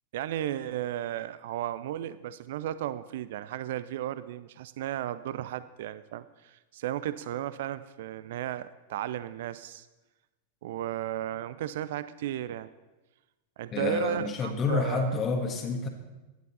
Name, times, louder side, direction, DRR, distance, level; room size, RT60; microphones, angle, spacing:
voice 1, 0.1-9.9 10.6-12.7 13.6-15.2, right 12 dB, 55° right, 14 dB, 0.5 m, -34 dB
voice 2, 13.7-15.9, left 4 dB, 30° left, 3 dB, 1.6 m, -29 dB
15.5 x 11.5 x 4.0 m, 1.1 s
figure-of-eight pair, 90°, 0 cm